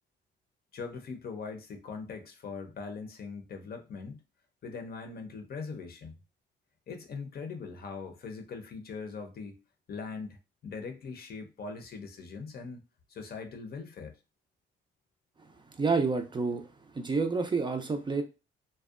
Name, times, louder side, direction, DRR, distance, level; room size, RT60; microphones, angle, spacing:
voice 1, 0.7-4.2 4.6-6.2 6.9-9.6 9.9-10.4 10.6-12.8 13.1-14.2, left 4 dB, 50° left, 0.6 m, -41 dB
voice 2, 15.7-16.7 16.9-18.2, right 4 dB, 25° right, 0.4 m, -29 dB
2.6 x 2.1 x 2.4 m
cardioid pair, 90°, 20 cm